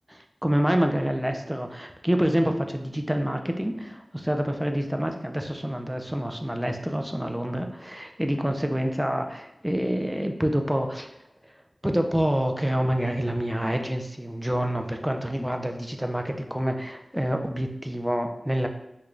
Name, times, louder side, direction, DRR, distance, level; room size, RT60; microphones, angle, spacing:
voice 1, 0.1-11.1 11.4-11.5 11.8-18.7, equal, 5° right, 5 dB, 0.3 m, -27 dB
3.0 x 2.2 x 3.7 m, 0.86 s
wide cardioid pair, 65°, 0 cm